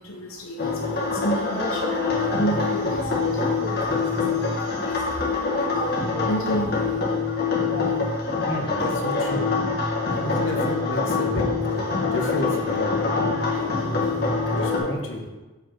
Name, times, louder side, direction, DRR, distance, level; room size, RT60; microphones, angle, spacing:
voice 1, 0.0-8.5 9.9-10.2 11.4-11.5 13.7-14.5, right 1 dB, 90° left, 0 dB, 0.9 m, -33 dB
sound 1, 0.6-14.8, left 4 dB, 50° left, 1.5 m, -25 dB
voice 2, 8.4-9.5 10.1-14.2 14.5-15.3, left 1 dB, 65° left, 2 dB, 1.2 m, -32 dB
6.9 x 4.9 x 4.6 m, 1.1 s
head